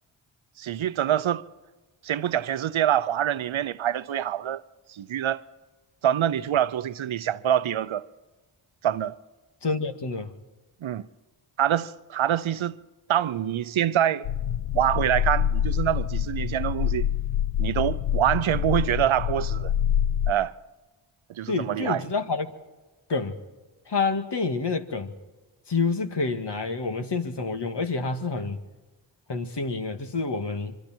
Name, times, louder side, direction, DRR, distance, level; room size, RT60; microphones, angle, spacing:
voice 1, 0.6-1.4 2.0-4.6 4.9-5.4 6.0-8.0 8.8-9.2 10.8-11.1 11.6-12.8 13.1-14.3 14.7-17.1 17.6-19.7 20.3-20.5 21.4-22.0, right 10 dB, 75° right, 0.8 m, -25 dB
voice 2, 9.6-10.3 21.5-22.5 23.1-23.4 23.9-25.1 25.7-28.6 29.3-30.8, left 4 dB, 60° left, 2.1 m, -28 dB
sound 1, 14.2-20.3, left 10 dB, 75° left, 0.7 m, -26 dB
25.5 x 24.0 x 4.5 m
cardioid pair, 50°, 48 cm